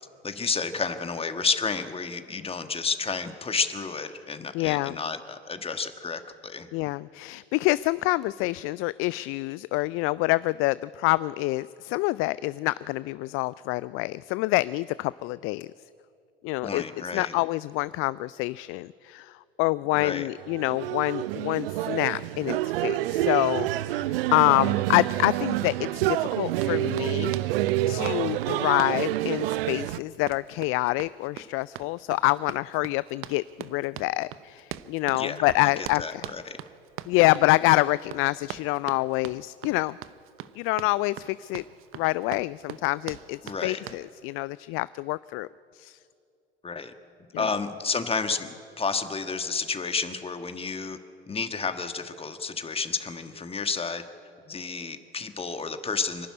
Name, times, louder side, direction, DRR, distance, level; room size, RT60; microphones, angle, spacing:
voice 1, 0.2-6.7 16.6-17.3 19.9-20.3 35.2-36.6 43.4-43.8 46.6-46.9 47.4-51.0 51.3-54.0 54.5-56.3, left 4 dB, 20° left, 9 dB, 1.5 m, -31 dB
voice 2, 4.5-5.0 6.7-15.7 16.4-16.8 17.1-19.3 19.6-27.3 27.9-36.2 37.1-39.9 40.6-41.6 41.9-45.5 45.8-46.0 47.3-47.5, left 21 dB, 45° left, 19 dB, 0.4 m, -26 dB
sound 1, 20.3-30.0, right 15 dB, 70° right, 0.5 m, -28 dB
Run, 26.5-44.1, right 12 dB, 45° right, 0.9 m, -42 dB
25.5 x 12.0 x 9.8 m, 2.5 s
hypercardioid pair, 75°, 30 cm